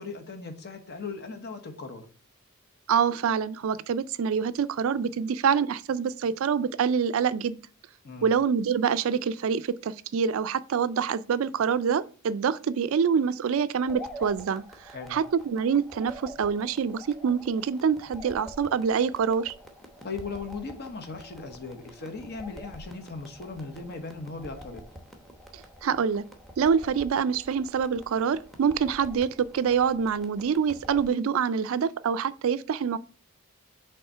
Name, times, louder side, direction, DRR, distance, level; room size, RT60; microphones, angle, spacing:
voice 1, 0.0-2.1 8.0-8.3 14.9-15.2 20.0-24.8, left 4 dB, 45° left, 1.0 m, -38 dB
voice 2, 2.9-7.6 8.2-19.5 25.8-26.2 26.6-33.0, right 6 dB, 65° right, 0.3 m, -26 dB
sound 1, 13.8-31.1, equal, ahead, 0.8 m, -47 dB
5.5 x 3.6 x 5.4 m
head